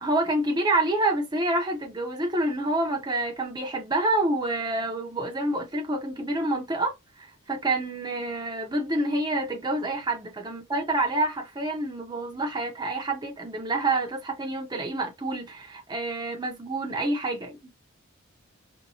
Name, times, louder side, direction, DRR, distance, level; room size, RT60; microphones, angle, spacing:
voice 1, 0.0-17.7, right 2 dB, 20° right, 0.6 m, -28 dB
2.7 x 2.2 x 2.8 m
head